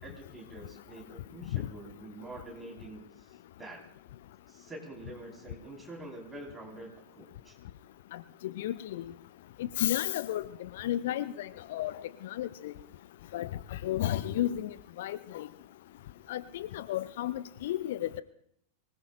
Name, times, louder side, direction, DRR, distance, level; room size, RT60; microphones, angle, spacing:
voice 1, 0.0-3.3 3.6-3.8 4.5-6.9 7.2-7.5, right 2 dB, 10° right, -2 dB, 4.5 m, -46 dB
voice 2, 8.6-9.1 9.8-11.9 12.2-12.7 13.3-14.7 15.0-15.5 16.3-18.2, left 13 dB, 55° left, 15 dB, 0.5 m, -33 dB
24.0 x 19.5 x 2.5 m, 0.69 s
figure-of-eight pair, 90°, 0 cm